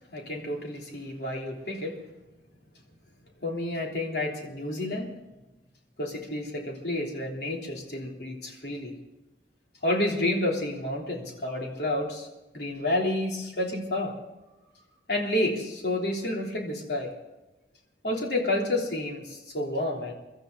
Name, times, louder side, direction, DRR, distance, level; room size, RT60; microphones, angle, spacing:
voice 1, 0.1-2.0 3.4-5.1 6.0-8.9 9.8-12.3 12.5-14.2 15.1-17.1 18.0-20.1, left 1 dB, 70° left, -1 dB, 3.4 m, -30 dB
24.0 x 13.0 x 4.0 m, 1.1 s
head